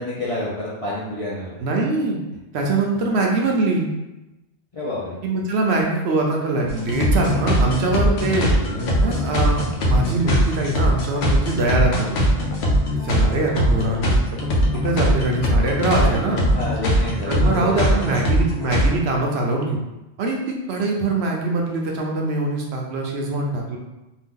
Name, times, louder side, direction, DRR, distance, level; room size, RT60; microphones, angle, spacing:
voice 1, 0.0-1.6 4.7-5.2 16.0-16.2 16.5-18.2, left 1 dB, 40° left, -7 dB, 0.5 m, -29 dB
voice 2, 1.6-2.2 2.5-3.9 5.2-8.5 9.0-12.3 13.0-14.2 14.5-16.4 17.3-19.8 20.2-23.8, right 2 dB, 70° right, 0 dB, 0.8 m, -23 dB
sound 1, 6.7-18.9, equal, 70° left, 0.8 m, -20 dB
2.7 x 2.2 x 3.6 m, 0.99 s
omnidirectional pair, 1.2 m